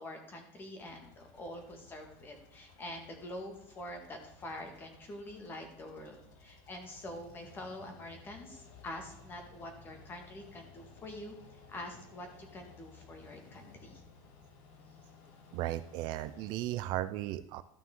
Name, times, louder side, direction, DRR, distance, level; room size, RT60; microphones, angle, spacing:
voice 1, 0.0-14.0, left 1 dB, 20° left, 4 dB, 1.8 m, -46 dB
sound 1, 0.8-16.6, left 4 dB, 70° left, 1.6 m, -57 dB
voice 2, 15.5-17.6, right 14 dB, 50° right, 12 dB, 0.4 m, -36 dB
13.5 x 5.9 x 3.7 m, 0.78 s
cardioid pair, 165°, 9 cm